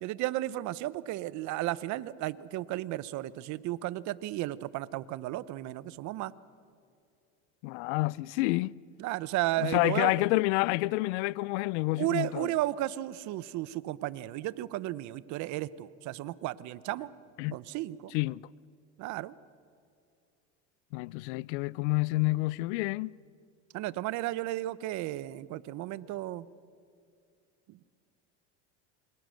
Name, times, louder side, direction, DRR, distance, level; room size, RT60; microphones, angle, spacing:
voice 1, 0.0-6.3 9.0-10.1 12.0-17.1 17.5-18.1 19.0-19.3 23.7-26.5 27.7-27.9, right 16 dB, 55° right, 1.0 m, -34 dB
voice 2, 7.6-8.8 9.6-12.5 17.4-17.6 18.1-18.4 20.9-23.1, left 21 dB, 70° left, 0.6 m, -28 dB
27.5 x 24.5 x 6.5 m
supercardioid pair, 110°, 35 cm